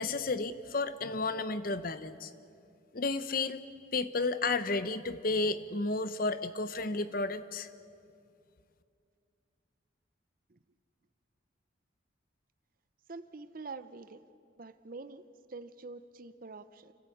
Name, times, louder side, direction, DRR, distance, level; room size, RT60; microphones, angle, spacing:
voice 1, 0.0-2.3 2.9-3.6 3.9-7.7, left 3 dB, 45° left, 13 dB, 0.8 m, -32 dB
voice 2, 13.1-14.2 14.6-15.2 15.5-16.9, right 3 dB, 45° right, 12 dB, 0.7 m, -45 dB
29.5 x 12.5 x 8.6 m, 2.5 s
head